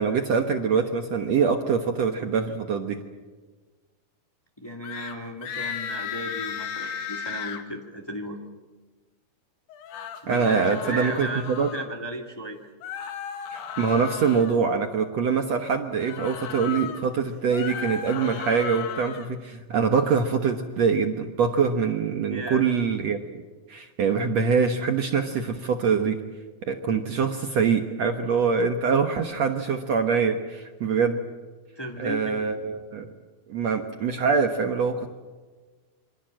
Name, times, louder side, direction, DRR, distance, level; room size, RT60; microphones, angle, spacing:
voice 1, 0.0-3.0 10.3-11.7 13.5-23.4 23.7-26.2 26.6-31.2 32.0-33.1 33.5-35.1, right 5 dB, 65° right, 6 dB, 1.7 m, -24 dB
voice 2, 4.6-8.4 10.2-11.4 11.7-12.6 22.3-22.7 31.7-32.4, right 1 dB, 20° left, 3 dB, 0.6 m, -35 dB
sound 1, 4.8-5.2 5.4-7.6 9.7-11.9 12.8-14.6 16.0-17.0 17.4-19.3, left 8 dB, 75° left, 3.9 m, -35 dB
27.5 x 25.0 x 7.6 m, 1.3 s
omnidirectional pair, 4.7 m